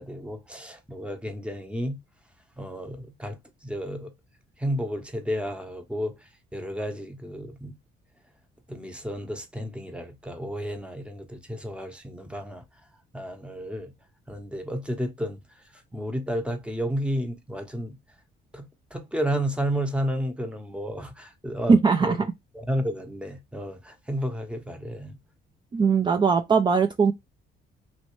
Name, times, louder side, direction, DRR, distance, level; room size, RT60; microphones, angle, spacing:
voice 1, 0.0-2.0 2.6-4.1 4.6-6.1 6.5-7.8 8.7-12.6 13.1-13.9 14.3-15.4 15.7-18.0 18.5-18.7 18.9-22.3 22.5-25.2, equal, 5° right, 0.8 m, -32 dB
voice 2, 21.7-22.2 25.7-27.1, right 5 dB, 25° right, 0.4 m, -20 dB
3.1 x 2.6 x 3.0 m
cardioid pair, 90°, 20 cm